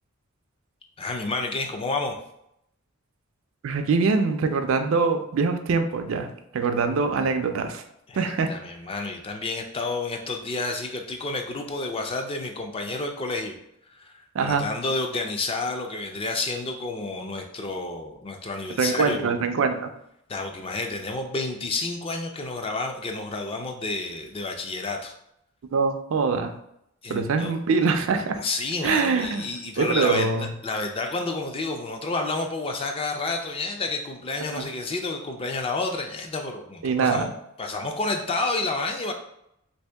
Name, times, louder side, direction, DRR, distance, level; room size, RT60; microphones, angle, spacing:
voice 1, 1.0-2.2 8.1-13.6 14.0-19.3 20.3-25.1 27.0-27.6 28.4-37.3 37.6-39.1, left 3 dB, 25° left, 4 dB, 0.3 m, -30 dB
voice 2, 3.6-7.8 8.2-8.5 14.3-14.7 18.8-19.9 25.7-26.5 27.1-28.4 28.8-29.5 29.8-30.5 34.6-34.7 36.8-37.3, right 4 dB, 60° right, 7 dB, 0.4 m, -23 dB
2.9 x 2.7 x 3.3 m, 0.78 s
head